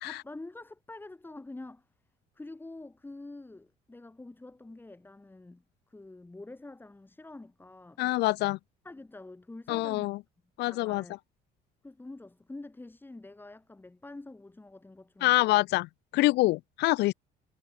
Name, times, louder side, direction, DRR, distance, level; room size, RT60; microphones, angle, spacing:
voice 1, 0.0-1.8 2.3-8.0 8.8-10.2 10.6-11.2 11.8-15.6, left 2 dB, 10° left, 2.4 m, -46 dB
voice 2, 8.0-8.6 9.7-10.2 10.6-11.0 15.2-15.9 16.1-17.1, left 19 dB, 85° left, 1.0 m, -25 dB
cardioid pair, 110°, 17 cm